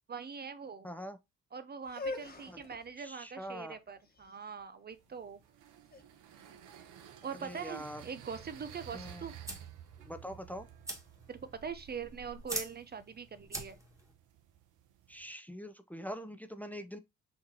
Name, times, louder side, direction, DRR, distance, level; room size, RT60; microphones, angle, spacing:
voice 1, 0.1-0.9 1.5-5.4 7.2-9.3 11.3-13.8, right 6 dB, 35° right, 0.6 m, -43 dB
voice 2, 0.8-1.2 2.5-2.6 3.0-3.8 7.4-8.0 8.9-9.2 10.1-10.7 15.1-17.0, equal, 5° left, 0.6 m, -43 dB
sound 1, 1.8-7.7, left 2 dB, 30° left, 1.3 m, -46 dB
sound 2, 4.9-15.3, right 10 dB, 90° right, 0.9 m, -54 dB
sound 3, 8.4-14.1, right 1 dB, 10° right, 1.6 m, -45 dB
6.5 x 2.9 x 2.8 m
cardioid pair, 90°, 30 cm